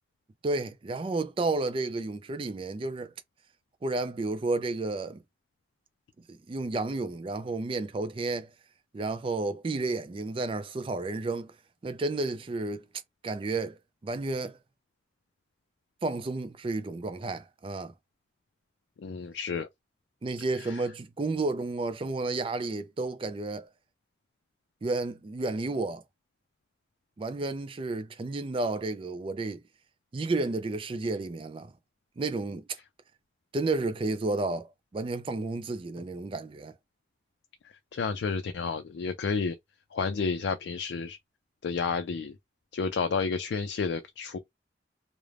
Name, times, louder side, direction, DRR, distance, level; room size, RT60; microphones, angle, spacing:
voice 1, 0.4-3.1 3.8-5.2 6.3-8.5 8.9-11.5 11.8-12.9 13.2-13.8 14.0-14.6 16.0-17.9 20.2-23.7 24.8-26.0 27.2-29.6 30.1-31.7 32.2-32.6 33.5-36.7, right 3 dB, 30° right, 0.3 m, -31 dB
voice 2, 19.0-19.7 37.9-39.6 39.9-41.2 41.6-42.3 42.7-44.4, left 5 dB, 80° left, 0.3 m, -30 dB
2.4 x 2.1 x 3.2 m
head